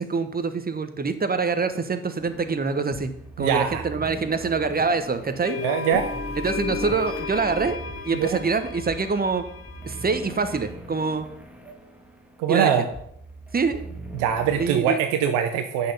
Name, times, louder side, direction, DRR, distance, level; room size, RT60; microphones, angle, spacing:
voice 1, 0.0-3.1 3.4-5.6 6.4-7.8 8.0-9.4 9.8-11.3 12.5-12.7 13.5-13.9 14.6-15.0, right 4 dB, 25° right, 10 dB, 1.2 m, -25 dB
sound 1, 2.2-14.7, equal, 5° right, 1.7 m, -39 dB
voice 2, 3.4-3.8 5.6-6.1 8.1-8.4 12.4-12.8 14.1-15.9, right 8 dB, 65° right, 6 dB, 0.9 m, -23 dB
sound 2, 5.4-10.7, left 6 dB, 35° left, 3.0 m, -35 dB
8.7 x 6.4 x 5.6 m, 0.71 s
figure-of-eight pair, 45°, 38 cm